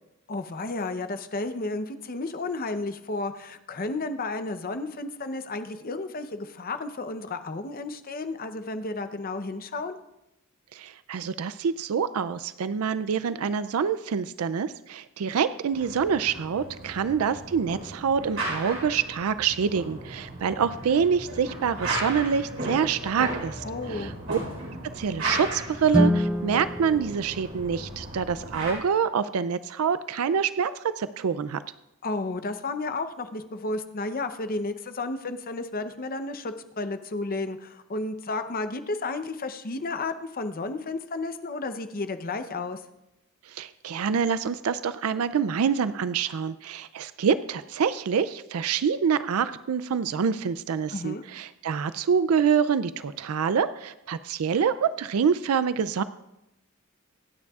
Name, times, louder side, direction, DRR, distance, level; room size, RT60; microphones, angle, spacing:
voice 1, 0.3-10.0 23.6-24.2 32.0-42.8 50.9-51.2, left 3 dB, 45° left, 9 dB, 0.7 m, -32 dB
voice 2, 10.7-24.4 25.0-31.6 43.5-56.0, right 6 dB, 85° right, 14 dB, 0.4 m, -26 dB
sound 1, 15.7-28.7, right 2 dB, 65° right, 4.2 m, -35 dB
Guitar, 25.9-28.5, left 1 dB, 5° right, 0.4 m, -27 dB
25.0 x 9.5 x 2.4 m, 0.90 s
head